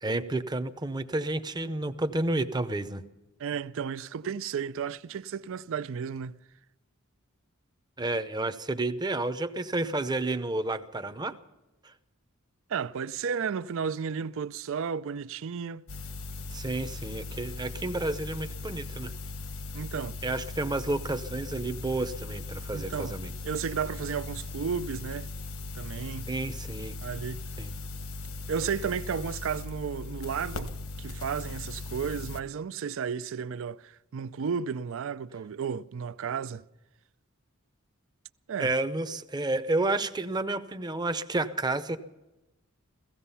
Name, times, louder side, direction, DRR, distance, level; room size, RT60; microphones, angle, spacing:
voice 1, 0.0-3.0 8.0-11.4 16.5-19.1 20.2-23.3 26.3-27.0 27.6-27.7 38.6-42.0, right 2 dB, 20° right, 0.7 m, -30 dB
voice 2, 3.4-6.4 12.7-15.8 19.7-20.2 22.7-23.2 23.4-25.3 25.7-26.3 27.0-27.4 28.5-30.7 31.0-36.6 38.5-38.7, right 6 dB, 65° right, 0.4 m, -33 dB
sound 1, 15.9-32.4, left 3 dB, 75° left, 1.2 m, -39 dB
16.5 x 15.5 x 5.6 m
head